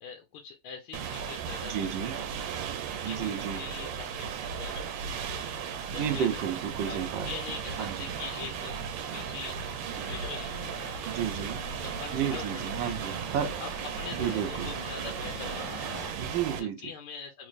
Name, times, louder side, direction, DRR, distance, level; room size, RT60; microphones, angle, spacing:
voice 1, 0.0-2.6 3.1-5.3 5.9-6.4 6.8-7.0 7.2-8.8 9.1-12.8 13.0-13.1 13.6-13.7 14.0-16.0 16.8-17.5, left 6 dB, 80° left, 1.6 m, -44 dB
sound 1, 0.9-16.6, right 7 dB, 90° right, 1.6 m, -36 dB
voice 2, 1.6-2.2 3.0-3.6 5.9-7.3 7.8-7.9 11.1-11.6 12.1-13.5 14.1-14.8 16.2-16.8, right 9 dB, 70° right, 1.3 m, -32 dB
sound 2, 6.0-16.1, left 2 dB, 20° left, 1.0 m, -46 dB
3.9 x 3.1 x 2.5 m
omnidirectional pair, 2.4 m